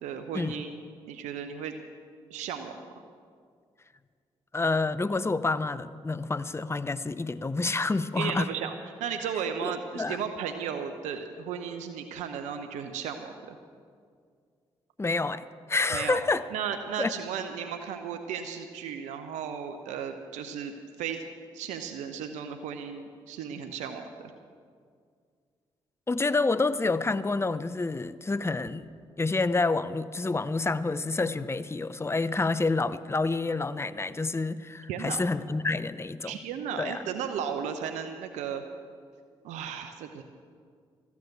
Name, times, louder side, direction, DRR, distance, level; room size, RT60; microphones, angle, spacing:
voice 1, 0.0-1.7 2.3-2.8 8.2-8.7 9.0-13.6 15.9-16.2 16.5-20.7 21.0-21.2 21.5-24.3 34.9-35.2 36.2-38.6 39.4-40.2, right 7 dB, 80° right, 7 dB, 0.8 m, -35 dB
voice 2, 4.5-8.5 9.6-10.2 15.0-16.4 17.0-17.1 26.1-28.9 29.2-36.4 36.8-37.0, left 3 dB, 20° left, 15 dB, 0.7 m, -28 dB
14.5 x 9.4 x 7.9 m, 2.1 s
hypercardioid pair, 40°, 12 cm